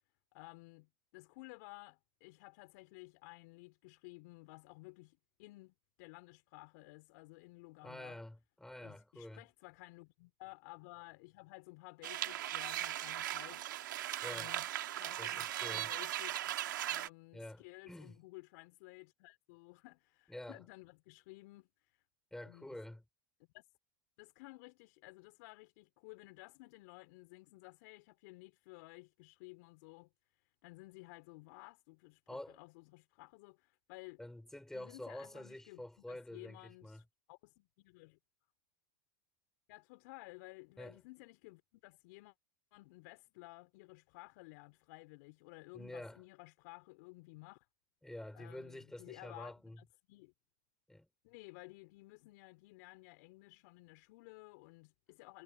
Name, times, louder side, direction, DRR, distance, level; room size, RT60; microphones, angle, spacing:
voice 1, 0.3-8.2 8.8-14.0 14.2-16.5 16.9-22.0 22.4-22.8 23.5-23.7 24.2-34.2 34.7-38.2 39.7-42.3 42.7-47.7 48.3-50.3 51.2-55.4, left 25 dB, 60° left, 4.5 m, -55 dB
voice 2, 7.8-9.4 14.2-14.5 15.2-15.9 17.3-18.2 20.3-20.6 22.3-23.0 32.3-32.6 34.2-37.0 40.8-41.0 45.7-46.2 48.0-49.8 50.9-51.1, left 1 dB, 5° left, 5.4 m, -48 dB
sound 1, 12.0-17.1, right 13 dB, 75° right, 2.7 m, -38 dB
hypercardioid pair, 90°, 11 cm